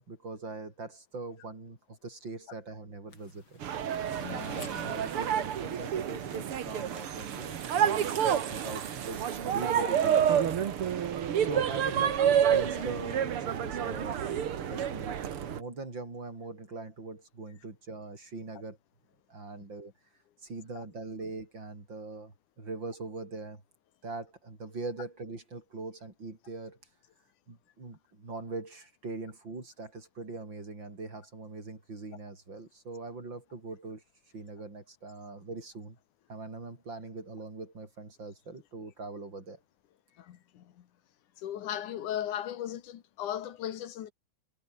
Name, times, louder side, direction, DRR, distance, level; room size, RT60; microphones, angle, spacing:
voice 1, 0.0-3.6 4.2-8.2 8.4-10.5 11.4-18.8 19.3-19.9 20.4-23.6 24.0-26.8 27.5-34.0 34.3-36.0 36.3-39.6, right 3 dB, 30° right, 6.3 m, -42 dB
sound 1, 3.1-9.0, left 3 dB, 35° left, 5.4 m, -53 dB
sound 2, 3.6-15.6, right 9 dB, 50° right, 1.9 m, -29 dB
voice 2, 4.2-4.5 8.3-8.4 9.8-9.9 12.8-12.9 14.4-14.5 20.7-20.8 40.2-40.9 41.4-44.1, left 11 dB, 65° left, 2.7 m, -37 dB
omnidirectional pair, 4.1 m